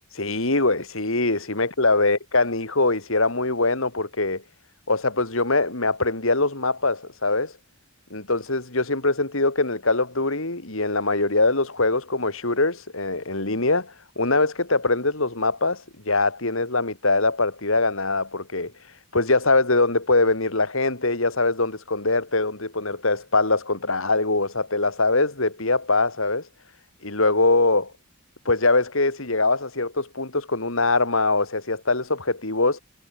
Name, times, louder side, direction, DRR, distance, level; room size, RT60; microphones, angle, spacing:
voice 1, 0.2-4.4 4.9-7.5 8.1-18.7 19.1-26.4 27.0-27.9 28.4-32.8, left 3 dB, 65° left, 3.2 m, -23 dB
head